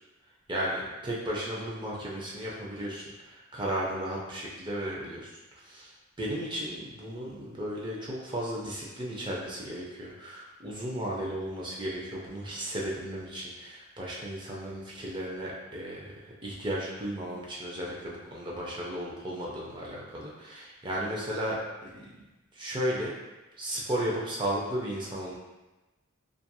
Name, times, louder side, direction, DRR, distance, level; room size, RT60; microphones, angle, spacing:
voice 1, 0.5-5.4 5.7-5.9 6.2-16.1 16.4-21.6 21.8-22.1 22.5-23.1 23.6-25.4, right 1 dB, 20° right, -4 dB, 0.5 m, -34 dB
2.8 x 2.4 x 2.2 m, 1.1 s
head